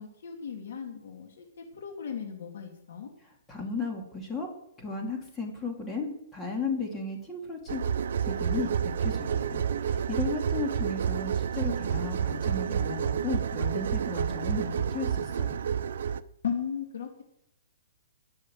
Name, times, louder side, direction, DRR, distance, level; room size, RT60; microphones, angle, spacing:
voice 1, 0.0-3.1 16.4-17.1, left 7 dB, 65° left, 2 dB, 2.6 m, -36 dB
voice 2, 3.5-4.5 4.8-7.8 8.2-15.6, left 3 dB, 10° left, 0 dB, 2.8 m, -35 dB
sound 1, 7.7-16.2, right 8 dB, 65° right, 0.7 m, -29 dB
19.0 x 6.4 x 7.8 m, 0.79 s
hypercardioid pair, 165°, 0 cm